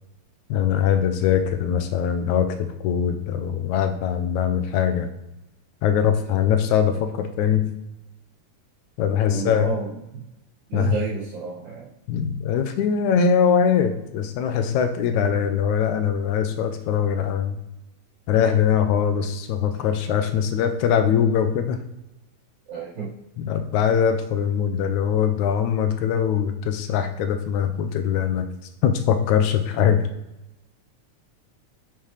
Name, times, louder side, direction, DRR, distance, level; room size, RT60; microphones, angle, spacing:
voice 1, 0.5-5.1 5.8-7.7 9.0-9.7 10.7-11.0 12.1-17.6 18.3-21.8 23.4-28.5 28.8-30.1, left 8 dB, 85° left, 8 dB, 2.1 m, -22 dB
voice 2, 9.3-10.0 10.7-11.9 22.7-23.1, right 5 dB, 80° right, -11 dB, 3.5 m, -29 dB
8.9 x 7.1 x 3.3 m, 0.91 s
omnidirectional pair, 3.4 m